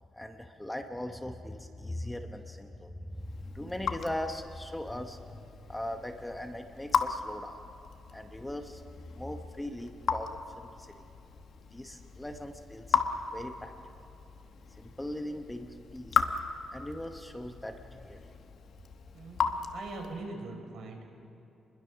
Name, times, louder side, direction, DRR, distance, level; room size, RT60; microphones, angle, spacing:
voice 1, 0.1-7.6 8.1-8.8 9.2-11.0 11.7-13.0 13.3-13.9 14.8-16.2 16.7-18.4, left 1 dB, 5° left, 6 dB, 0.9 m, -40 dB
Raindrop / Drip, 3.1-20.3, left 6 dB, 55° left, 1.1 m, -36 dB
voice 2, 19.1-21.1, right 3 dB, 70° right, 1 dB, 4.8 m, -42 dB
28.0 x 21.5 x 6.2 m, 2.8 s
cardioid pair, 165°, 0 cm